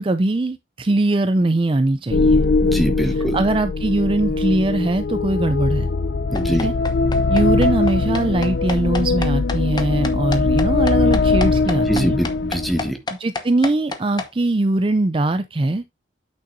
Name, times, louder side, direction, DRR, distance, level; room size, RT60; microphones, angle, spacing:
voice 1, 0.0-2.4 3.0-5.9 6.5-6.7 7.3-12.2 13.1-15.8, right 2 dB, 30° right, 0.4 m, -21 dB
sound 1, 2.1-12.9, left 3 dB, 70° left, 0.5 m, -20 dB
voice 2, 2.6-3.3 6.3-6.7 11.9-13.0, equal, ahead, 1.1 m, -23 dB
sound 2, 6.3-14.3, left 3 dB, 25° left, 0.8 m, -29 dB
8.7 x 6.4 x 2.6 m
head